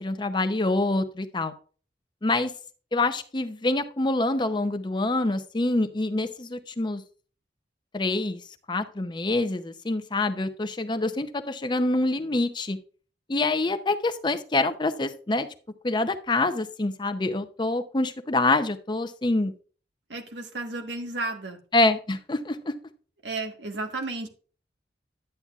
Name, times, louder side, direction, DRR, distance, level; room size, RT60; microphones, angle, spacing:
voice 1, 0.0-1.5 2.2-2.5 2.9-7.0 7.9-8.4 8.7-12.8 13.3-15.5 15.8-19.5 21.7-22.7, left 2 dB, 25° left, 9 dB, 0.6 m, -26 dB
voice 2, 20.1-21.6 23.2-24.3, right 2 dB, 90° right, 4 dB, 1.4 m, -33 dB
11.0 x 8.6 x 2.4 m, 0.40 s
head